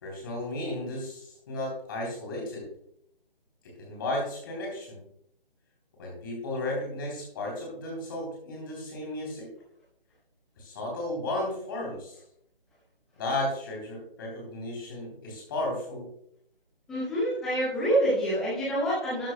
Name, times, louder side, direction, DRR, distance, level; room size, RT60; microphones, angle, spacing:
voice 1, 0.0-2.7 3.8-5.1 6.0-9.5 10.6-12.2 13.2-16.1, left 1 dB, 25° left, -1 dB, 3.3 m, -34 dB
voice 2, 16.9-19.3, right 1 dB, ahead, -8 dB, 0.7 m, -27 dB
12.5 x 11.0 x 2.2 m, 0.70 s
figure-of-eight pair, 150°, 29 cm